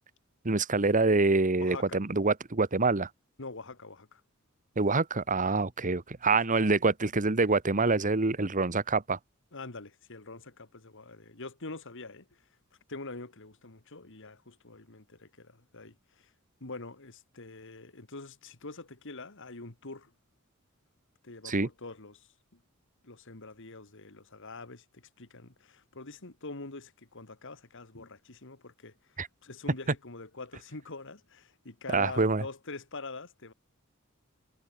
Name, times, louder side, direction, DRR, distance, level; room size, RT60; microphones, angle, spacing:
voice 1, 0.4-3.1 4.8-9.2 21.4-21.7 29.2-29.3 31.9-32.4, right 3 dB, 40° right, 1.3 m, -26 dB
voice 2, 1.5-2.0 3.4-4.2 9.5-12.4 12.9-16.3 16.6-20.1 21.2-22.6 23.0-29.1 29.4-33.5, left 3 dB, 65° left, 2.4 m, -45 dB
head